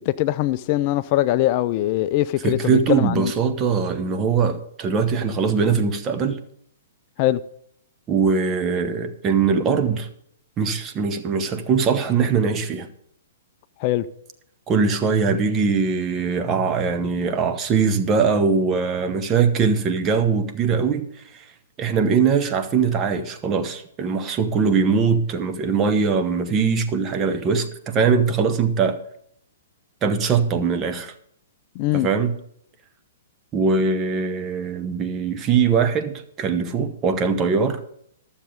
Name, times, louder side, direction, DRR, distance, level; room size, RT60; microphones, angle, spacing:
voice 1, 0.1-3.3 7.2-7.4 13.8-14.1 31.8-32.1, left 15 dB, 40° left, 0.4 m, -22 dB
voice 2, 2.4-6.4 8.1-10.1 10.6-12.9 14.7-21.1 21.3-21.4 21.8-29.0 30.0-31.1 31.9-32.3 33.5-37.8, right 5 dB, 25° right, 1.0 m, -21 dB
12.0 x 7.2 x 5.2 m
figure-of-eight pair, 115°, 0 cm